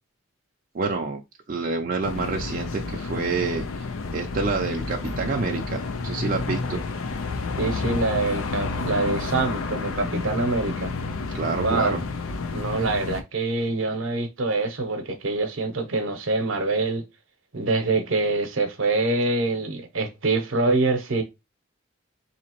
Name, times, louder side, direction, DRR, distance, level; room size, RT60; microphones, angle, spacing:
voice 1, 0.7-1.2 1.5-3.9 4.1-6.8 11.3-12.0, right 4 dB, 40° right, 0.5 m, -28 dB
sound 1, 2.0-13.2, left 4 dB, 85° left, 0.6 m, -30 dB
voice 2, 7.6-10.9 11.6-12.0 12.5-17.0 17.5-21.2, right 3 dB, 70° right, 0.8 m, -25 dB
4.0 x 2.8 x 2.9 m
head